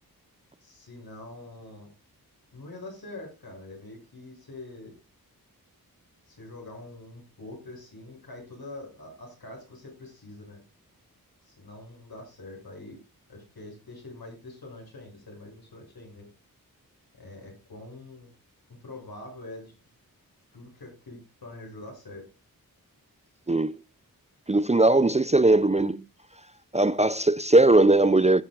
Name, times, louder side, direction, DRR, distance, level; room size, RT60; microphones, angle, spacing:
voice 1, 0.6-1.9 2.5-4.9 6.2-10.6 11.4-13.0 13.3-16.3 17.2-18.3 18.8-19.8 20.5-22.3, left 2 dB, 80° left, 7.6 m, -44 dB
voice 2, 24.5-26.0 26.7-28.4, right 2 dB, 20° right, 0.4 m, -19 dB
19.0 x 7.2 x 2.5 m
wide cardioid pair, 100°, 36 cm